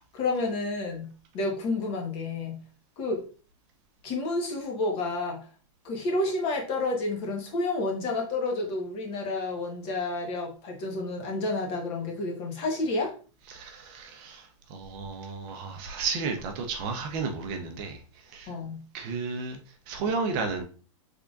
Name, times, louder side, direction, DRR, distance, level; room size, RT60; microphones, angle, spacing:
voice 1, 0.1-2.6 3.0-3.2 4.0-5.5 5.8-13.1 18.5-18.8, left 2 dB, 35° left, 1.1 m, -30 dB
voice 2, 13.5-18.5 18.9-20.6, right 4 dB, 40° right, 0.6 m, -33 dB
3.6 x 3.4 x 2.4 m
hypercardioid pair, 140°, 17 cm